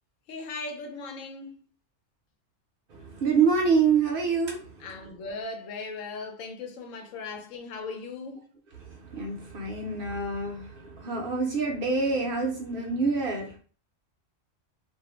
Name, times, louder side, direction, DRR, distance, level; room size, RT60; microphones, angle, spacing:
voice 1, 0.3-1.6 4.8-8.5, left 3 dB, 90° left, 1.0 m, -38 dB
voice 2, 2.9-4.9 8.8-13.6, right 5 dB, 55° right, 0.7 m, -26 dB
2.5 x 2.0 x 2.9 m
omnidirectional pair, 1.3 m